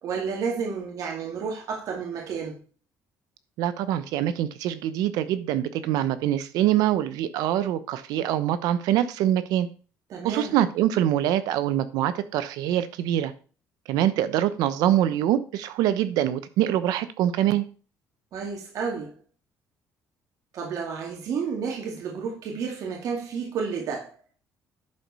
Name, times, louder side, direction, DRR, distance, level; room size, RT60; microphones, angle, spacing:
voice 1, 0.0-2.6 10.1-10.6 18.3-19.1 20.5-24.2, right 6 dB, 60° right, 2.2 m, -31 dB
voice 2, 3.6-9.7 10.2-13.3 13.9-17.6, right 12 dB, 85° right, 0.9 m, -24 dB
11.0 x 4.7 x 5.5 m
cardioid pair, 110°, 6 cm